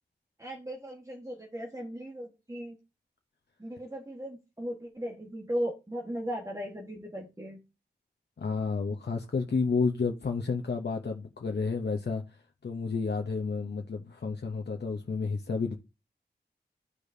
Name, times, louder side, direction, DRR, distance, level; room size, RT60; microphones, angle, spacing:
voice 1, 0.4-2.8 3.6-7.6, equal, 20° right, 1.4 m, -37 dB
voice 2, 8.4-12.2 12.6-15.8, left 4 dB, 80° left, 0.8 m, -31 dB
12.5 x 4.9 x 2.7 m
wide cardioid pair, 80°, 17 cm